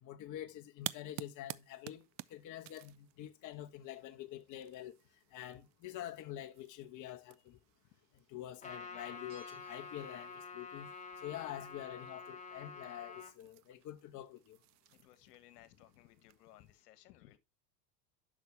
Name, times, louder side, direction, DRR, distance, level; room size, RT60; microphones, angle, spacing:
voice 1, 0.0-4.9 5.3-7.6 8.3-10.9 11.2-14.6, left 12 dB, 40° left, 1.2 m, -46 dB
sound 1, 0.8-16.8, right 17 dB, 35° right, 0.5 m, -53 dB
Trumpet, 8.6-13.3, left 4 dB, 15° left, 2.9 m, -48 dB
Bell, 9.3-10.7 11.0-11.1, equal, 20° right, 6.1 m, -65 dB
voice 2, 14.9-17.4, left 14 dB, 70° left, 1.6 m, -61 dB
11.5 x 6.1 x 3.3 m
hypercardioid pair, 95°, 49 cm